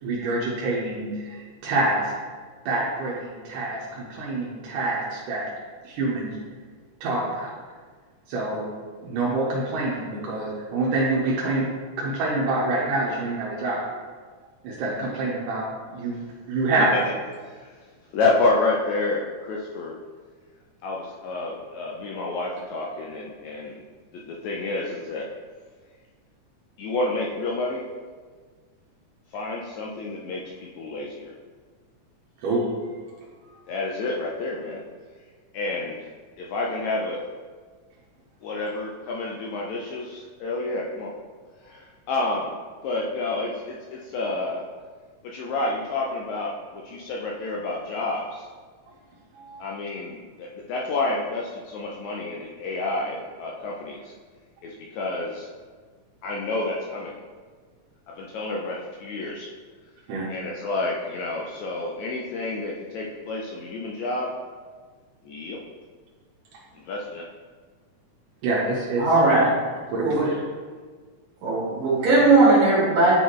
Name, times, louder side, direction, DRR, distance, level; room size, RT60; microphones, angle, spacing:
voice 1, 0.0-2.1 2.7-5.4 5.8-6.4 7.0-7.5 8.3-8.7 9.0-11.7 12.0-13.8 14.6-16.9 32.4-32.7 49.3-49.6 60.1-60.3 68.4-69.0 69.9-70.4, right 2 dB, 85° right, -5 dB, 2.4 m, -26 dB
voice 2, 17.5-17.8 18.1-20.0 20.8-23.8 24.1-25.3 26.8-27.9 29.3-31.3 33.7-34.8 35.5-36.0 36.4-37.2 38.4-41.1 41.6-42.6 42.8-44.6 45.2-48.5 49.6-54.1 54.6-55.5 56.2-57.2 58.1-59.5 60.3-64.3 65.2-65.6 66.7-67.3, left 2 dB, 80° left, -2 dB, 1.7 m, -29 dB
voice 3, 69.0-69.5 70.0-70.2 71.4-73.2, right 2 dB, 65° right, -9 dB, 2.7 m, -18 dB
9.0 x 4.1 x 3.0 m, 1.5 s
omnidirectional pair, 3.7 m